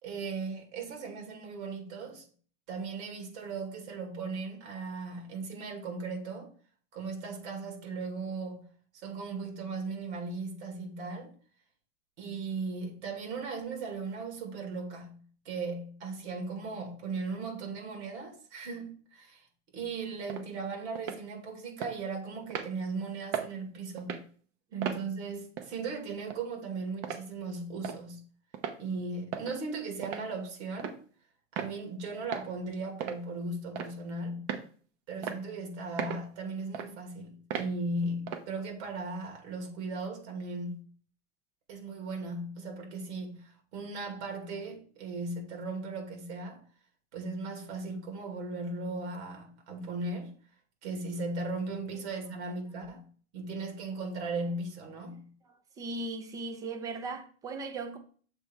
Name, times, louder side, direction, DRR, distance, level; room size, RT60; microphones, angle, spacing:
voice 1, 0.0-2.2 2.7-6.5 6.9-8.7 9.0-11.3 12.2-19.5 19.7-24.2 24.7-28.2 28.8-31.0 31.5-34.5 35.1-40.9 41.7-46.6 47.1-50.3 50.8-53.1 53.3-55.3, right 3 dB, 65° right, 2.5 m, -37 dB
sound 1, 20.3-20.4 20.9-21.2 21.8-21.9 22.5-22.7 23.3-23.5 24.0-24.2 24.8-25.0 25.6-25.7 26.3-26.4 27.0-27.2 27.8-28.0 28.5-28.8 29.3-29.5 30.0-30.3 30.8-31.0 31.6-31.7 32.3-32.5 33.0-33.2 33.7-34.0 34.5-34.7 35.2-35.4 36.0-36.2 36.7-36.9 37.5-37.7 38.3-38.5, right 8 dB, 45° right, 0.8 m, -36 dB
voice 2, 55.8-58.0, right 3 dB, 10° right, 0.4 m, -37 dB
7.1 x 3.4 x 4.6 m
supercardioid pair, 155°, 37 cm